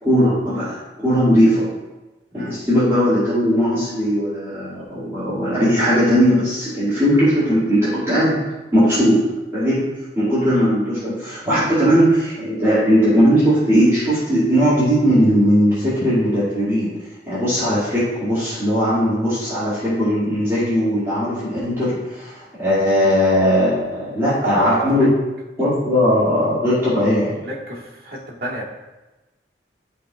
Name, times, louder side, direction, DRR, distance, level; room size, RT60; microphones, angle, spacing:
voice 1, 0.0-1.7 2.3-16.9 17.2-25.1 25.6-27.3, equal, 15° right, -14 dB, 2.4 m, -18 dB
voice 2, 24.3-25.1 27.4-28.6, right 1 dB, 50° right, -3 dB, 1.6 m, -27 dB
12.5 x 4.6 x 2.4 m, 1.1 s
head